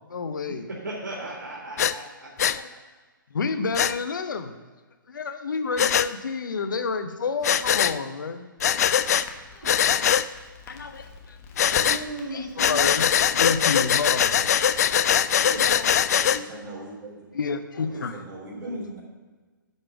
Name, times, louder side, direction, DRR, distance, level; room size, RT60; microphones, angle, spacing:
voice 1, 0.1-0.7 2.5-2.7 3.3-4.5 5.1-8.5 9.5-9.7 10.0-10.1 10.7-11.0 12.3-14.6 15.6-16.1 17.3-18.1, left 5 dB, 65° left, 8 dB, 0.9 m, -30 dB
voice 2, 0.7-2.3 11.8-12.9 15.4-15.6 18.5-18.9, right 1 dB, 70° right, -5 dB, 2.7 m, -35 dB
Breathing, 1.8-1.9 2.4-2.6 3.7-3.9 5.8-6.1 7.4-8.0 8.6-9.3 9.6-10.3 11.6-12.0 12.6-16.4, left 9 dB, 50° left, 0.4 m, -21 dB
Crackle, 9.2-14.9, left 4 dB, 20° left, 1.2 m, -46 dB
voice 3, 16.1-17.2 17.8-19.0, right 2 dB, 25° right, -2 dB, 2.8 m, -41 dB
11.0 x 5.5 x 6.0 m, 1.3 s
figure-of-eight pair, 130°, 11 cm